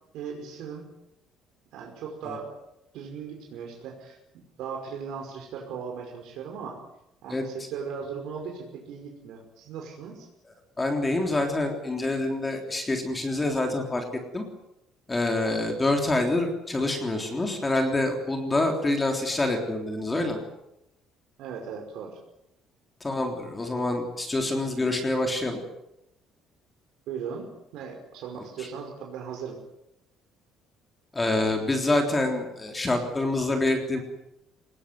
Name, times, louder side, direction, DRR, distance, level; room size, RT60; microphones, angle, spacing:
voice 1, 0.1-0.8 1.7-2.5 2.9-4.2 4.6-6.8 7.2-10.3 21.4-22.2 27.1-29.6, right 6 dB, 65° right, 1 dB, 5.4 m, -38 dB
voice 2, 10.8-14.0 14.3-14.5 15.1-20.4 23.0-25.6 31.1-34.0, left 2 dB, 10° left, 3 dB, 3.6 m, -26 dB
25.0 x 20.5 x 9.6 m, 0.85 s
cardioid pair, 175°, 0 cm